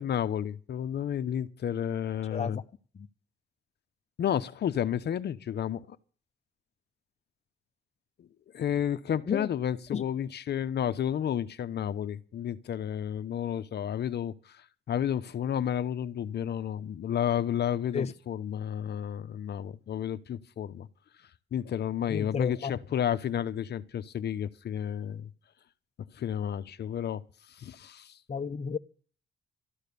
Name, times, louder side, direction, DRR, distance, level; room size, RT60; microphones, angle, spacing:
voice 1, 0.0-2.6 4.2-6.0 8.2-8.3 8.5-20.9 21.5-25.3 26.1-27.2 27.5-28.2, left 9 dB, 55° left, 0.9 m, -31 dB
voice 2, 2.3-2.6 2.9-3.1 9.3-9.5 9.9-10.0 17.9-18.1 22.1-22.7 28.3-28.8, left 6 dB, 35° left, 0.8 m, -32 dB
13.5 x 11.5 x 6.9 m
cardioid pair, 90°, 20 cm